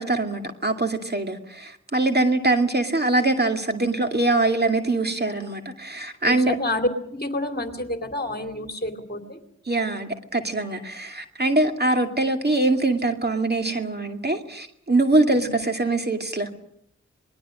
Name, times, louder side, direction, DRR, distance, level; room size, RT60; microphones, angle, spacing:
voice 1, 0.0-6.6 9.7-16.5, right 2 dB, 35° right, 5 dB, 2.4 m, -23 dB
voice 2, 6.2-9.4 15.3-15.6, left 1 dB, 35° left, 6 dB, 2.7 m, -29 dB
27.0 x 20.5 x 6.4 m, 0.72 s
cardioid pair, 40°, 30 cm